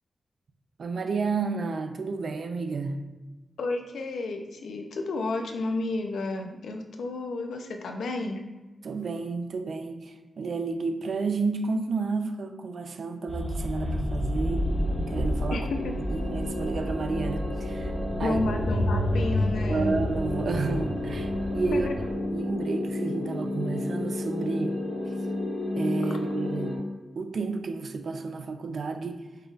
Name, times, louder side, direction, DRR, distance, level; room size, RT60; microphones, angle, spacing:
voice 1, 0.8-3.0 8.8-14.7 15.1-15.7 16.1-17.9 18.2-18.6 19.7-21.9 22.3-24.7 25.8-26.8 27.2-29.2, right 4 dB, 60° right, 7 dB, 0.5 m, -31 dB
voice 2, 3.6-8.4 15.5-15.9 18.2-19.9 21.7-21.9, left 3 dB, 90° left, 4 dB, 0.5 m, -31 dB
sound 1, 13.3-22.1, equal, 15° right, 1.1 m, -30 dB
sound 2, 14.0-26.8, left 2 dB, 55° left, 1.2 m, -33 dB
5.5 x 2.4 x 3.9 m, 1.2 s
wide cardioid pair, 120°, 0 cm